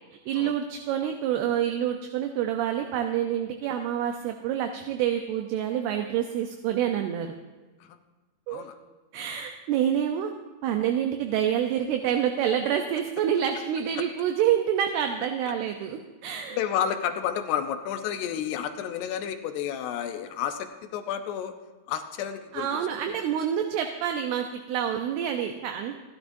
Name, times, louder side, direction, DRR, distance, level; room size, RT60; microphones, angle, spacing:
voice 1, 0.3-7.3 8.5-8.7 9.1-10.3 10.6-16.6 22.5-25.9, right 9 dB, 80° right, 4 dB, 2.7 m, -27 dB
voice 2, 16.5-21.5 21.9-22.8 23.1-23.2, left 9 dB, 80° left, 7 dB, 3.0 m, -31 dB
29.0 x 11.5 x 2.7 m, 1.3 s
omnidirectional pair, 4.8 m